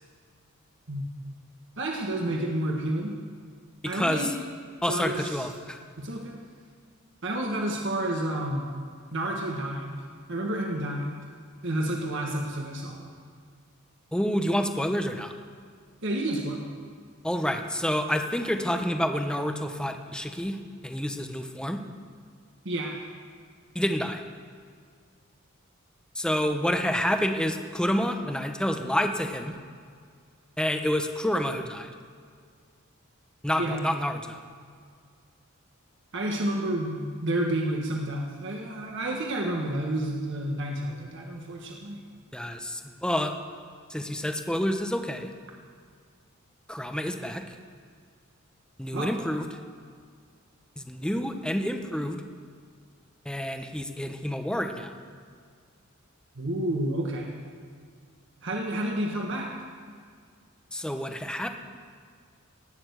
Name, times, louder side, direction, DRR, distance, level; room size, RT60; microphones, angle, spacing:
voice 1, 1.8-3.1 3.8-4.3 4.9-5.5 6.0-6.4 7.2-8.7 9.1-10.0 10.3-11.2 11.6-13.1 16.0-16.7 22.6-23.0 33.6-33.9 36.1-42.0 48.9-49.1 56.3-57.4 58.4-59.5, right 1 dB, 60° right, 0 dB, 1.6 m, -30 dB
voice 2, 3.8-4.3 4.8-5.8 14.1-15.3 17.2-20.6 20.8-21.8 23.7-24.2 26.1-29.6 30.6-31.9 33.4-34.4 42.3-43.3 43.9-45.3 46.7-47.5 48.8-49.5 50.8-52.2 53.2-54.9 60.7-61.5, equal, 5° left, 5 dB, 0.9 m, -28 dB
19.0 x 6.9 x 8.1 m, 2.1 s
head